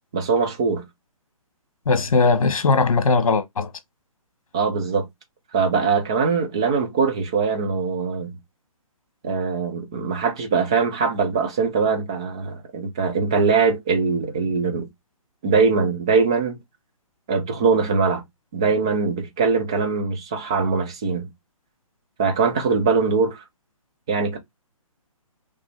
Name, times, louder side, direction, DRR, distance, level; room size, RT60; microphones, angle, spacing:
voice 1, 0.1-0.9 4.5-5.1 5.5-8.4 9.2-14.9 15.4-16.6 17.3-18.2 18.5-21.3 22.2-23.4 24.1-24.4, right 5 dB, 10° right, 0.3 m, -22 dB
voice 2, 1.8-3.7, left 4 dB, 70° left, 1.4 m, -19 dB
5.1 x 3.1 x 3.2 m
hypercardioid pair, 165°, 18 cm